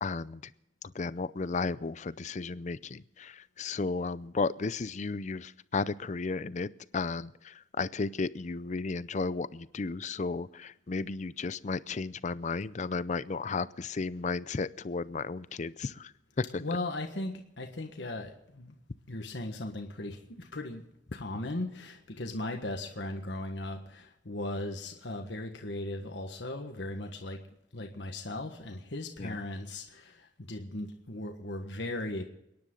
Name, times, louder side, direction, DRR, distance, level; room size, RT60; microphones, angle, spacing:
voice 1, 0.0-0.5 0.9-6.7 6.9-16.6 29.2-29.4, left 4 dB, 40° left, 17 dB, 0.5 m, -34 dB
voice 2, 16.6-18.8 19.1-20.8 21.1-27.4 27.7-32.2, left 2 dB, 65° left, 4 dB, 1.5 m, -37 dB
29.5 x 10.5 x 3.8 m, 0.83 s
head